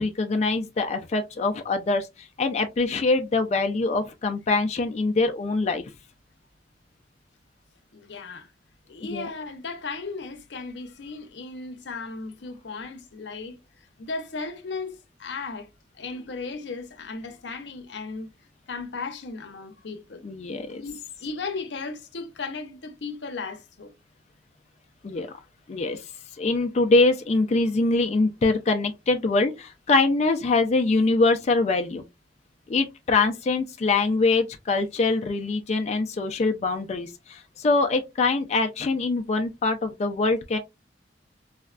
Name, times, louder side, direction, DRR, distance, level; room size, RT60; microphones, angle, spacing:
voice 1, 0.0-5.8 9.1-9.3 20.2-20.8 25.0-25.3 25.7-26.0 26.4-32.0 32.7-40.6, left 3 dB, 40° left, 0.4 m, -24 dB
voice 2, 7.9-8.5 8.9-13.6 14.0-15.7 15.9-18.3 18.7-20.2 20.8-23.9, left 4 dB, 85° left, 0.7 m, -36 dB
4.0 x 2.2 x 2.4 m
head